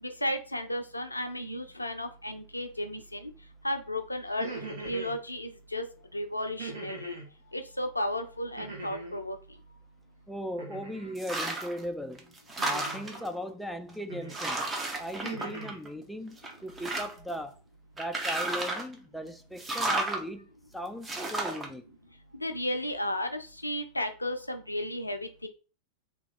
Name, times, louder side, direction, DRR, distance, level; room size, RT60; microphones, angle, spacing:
voice 1, 0.0-3.3 3.6-4.5 4.8-5.8 6.1-7.2 7.5-9.4 22.3-25.5, left 1 dB, 85° left, 0.5 m, -33 dB
sound 1, 4.3-5.2 6.6-7.3 8.6-9.2 10.6-11.2 12.6-13.2 14.1-14.5 14.9-15.8, right 3 dB, 55° right, 1.5 m, -41 dB
voice 2, 10.3-12.4 12.6-14.7 15.0-17.6 18.0-20.5 20.7-21.8, equal, ahead, 0.4 m, -38 dB
sound 2, 11.2-11.8 12.2-13.3 13.9-14.0 14.3-16.0 16.4-17.3 18.0-18.9 19.6-20.2 21.0-21.7, right 2 dB, 15° right, 0.9 m, -32 dB
3.0 x 2.9 x 3.8 m
figure-of-eight pair, 90°, 0 cm